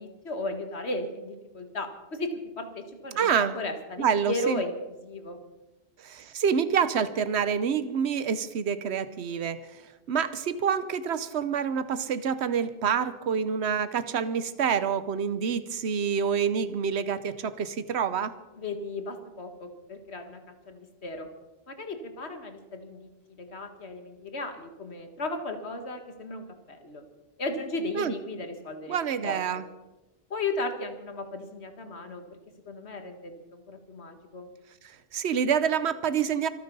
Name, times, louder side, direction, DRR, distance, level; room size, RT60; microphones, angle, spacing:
voice 1, 0.0-4.8 5.0-5.4 18.6-21.3 21.7-27.0 27.4-29.0 29.2-29.4 30.3-32.4 32.7-34.5, left 2 dB, 90° left, 7 dB, 2.0 m, -35 dB
voice 2, 3.2-3.5 4.0-4.6 6.0-9.8 10.1-18.3 28.0-28.1 28.9-29.6 35.1-36.5, right 7 dB, 90° right, 13 dB, 1.1 m, -27 dB
25.0 x 9.3 x 5.4 m, 1.1 s
omnidirectional pair, 1.1 m